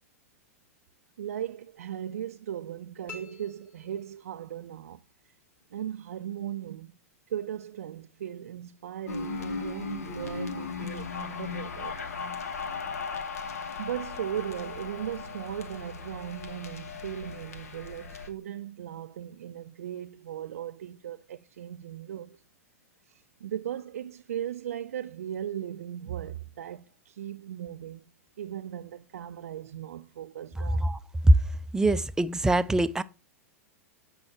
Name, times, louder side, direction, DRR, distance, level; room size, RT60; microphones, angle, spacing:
voice 1, 1.2-5.3 5.7-6.9 7.3-12.0 13.8-22.4 23.1-28.0 28.4-30.9, right 10 dB, 70° right, 0.4 m, -37 dB
sound 1, 3.1-4.6, left 4 dB, 25° left, 2.3 m, -48 dB
sound 2, 9.1-18.3, left 5 dB, 75° left, 1.2 m, -37 dB
voice 2, 31.7-33.0, right 1 dB, 5° right, 0.4 m, -22 dB
7.8 x 5.5 x 4.2 m
hypercardioid pair, 105°, 8 cm